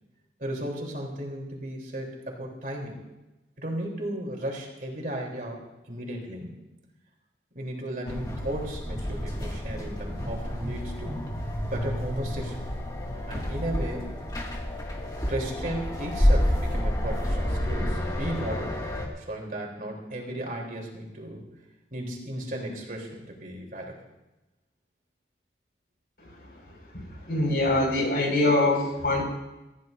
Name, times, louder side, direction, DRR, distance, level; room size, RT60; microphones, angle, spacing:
voice 1, 0.4-3.0 3.6-6.5 7.5-11.2 11.6-12.6 13.3-14.2 15.3-18.8 19.2-21.4 21.9-24.0, right 1 dB, 50° right, 0 dB, 3.6 m, -35 dB
sound 1, 8.1-19.1, equal, 20° left, 2.2 m, -29 dB
voice 2, 26.9-29.2, left 2 dB, 60° left, 0 dB, 5.6 m, -24 dB
25.5 x 15.0 x 2.7 m, 1.0 s
head